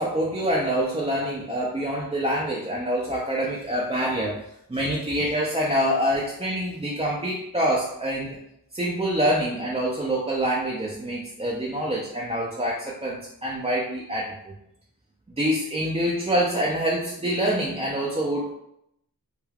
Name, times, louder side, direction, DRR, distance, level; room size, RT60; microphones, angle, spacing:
voice 1, 0.0-4.4 4.7-8.4 8.7-14.5 15.4-18.6, equal, 15° right, -4 dB, 0.4 m, -26 dB
3.2 x 2.2 x 2.3 m, 0.77 s
wide cardioid pair, 45°, 38 cm